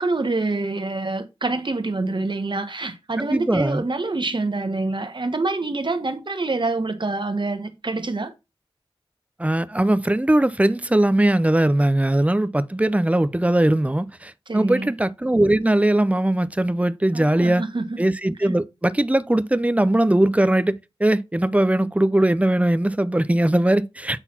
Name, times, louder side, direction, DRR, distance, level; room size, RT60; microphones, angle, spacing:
voice 1, 0.0-8.3 14.5-14.9 17.1-18.0, right 3 dB, 55° right, 1.2 m, -26 dB
voice 2, 3.2-3.8 9.4-17.6 18.0-24.2, right 1 dB, 15° right, 0.6 m, -20 dB
8.1 x 4.0 x 4.3 m
wide cardioid pair, 50°, 10 cm